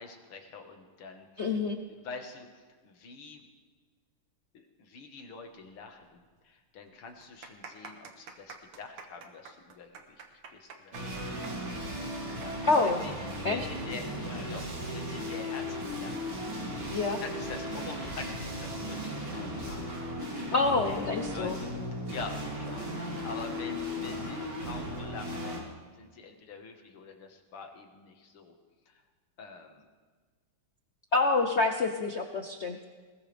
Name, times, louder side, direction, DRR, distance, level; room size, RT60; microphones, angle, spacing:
voice 1, 0.0-1.6 2.0-3.5 4.5-10.2 10.5-11.1 11.9-16.4 16.9-21.7 22.1-22.9 23.2-28.6 28.9-29.0 29.4-29.8, left 4 dB, 80° left, 4 dB, 2.5 m, -46 dB
voice 2, 1.4-1.8 12.6-13.0 13.4-13.6 16.9-17.2 20.5-21.6 31.1-32.8, left 3 dB, 60° left, 4 dB, 0.7 m, -27 dB
sound 1, 6.0-6.1 6.4-6.5 7.1-14.3 14.6-14.7 15.5-15.8, right 5 dB, 85° right, 2.3 m, -48 dB
sound 2, 10.9-25.6, equal, 60° right, 3.8 m, -36 dB
20.5 x 20.5 x 3.5 m, 1.4 s
omnidirectional pair, 2.4 m